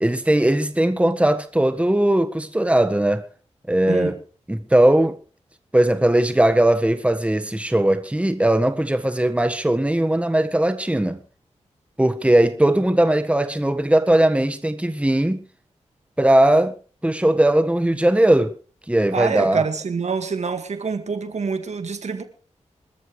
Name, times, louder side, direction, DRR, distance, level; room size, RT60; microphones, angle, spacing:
voice 1, 0.0-3.2 3.7-4.2 4.5-5.1 5.7-11.2 12.0-15.4 16.2-16.7 17.0-18.5 18.9-19.6, right 1 dB, 10° right, 1.6 m, -19 dB
voice 2, 3.9-4.2 19.1-22.2, right 5 dB, 70° right, 2.1 m, -26 dB
25.5 x 13.5 x 3.3 m
cardioid pair, 45°, 12 cm